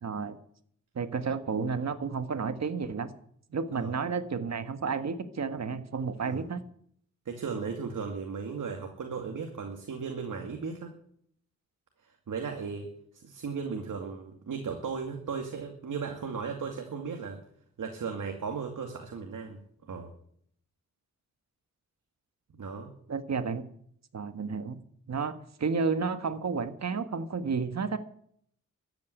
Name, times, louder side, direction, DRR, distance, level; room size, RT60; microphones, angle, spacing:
voice 1, 0.0-0.4 0.9-3.1 3.5-6.6 23.1-23.7 24.1-24.8 25.1-28.0, right 5 dB, 55° right, 10 dB, 1.5 m, -31 dB
voice 2, 7.3-10.9 12.0-17.4 17.8-19.6 19.9-20.1 22.5-22.9, right 5 dB, 75° right, 4 dB, 2.4 m, -36 dB
13.5 x 9.5 x 9.3 m, 0.65 s
cardioid pair, 80°, 32 cm